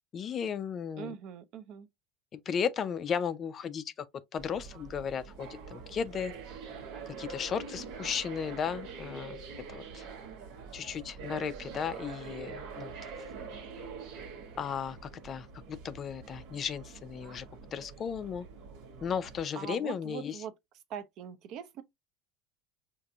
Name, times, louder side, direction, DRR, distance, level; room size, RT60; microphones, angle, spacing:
voice 1, 0.1-1.2 2.3-4.1 4.3-6.3 7.2-9.4 9.7-10.1 10.7-13.1 14.6-18.5 19.0-20.4, left 7 dB, 30° left, 0.3 m, -35 dB
voice 2, 1.0-1.9 6.9-7.2 19.5-20.5 20.9-21.8, right 9 dB, 50° right, 0.5 m, -42 dB
sound 1, 4.4-19.4, right 5 dB, 75° right, 1.3 m, -45 dB
4.7 x 2.5 x 2.6 m
supercardioid pair, 135°, 0 cm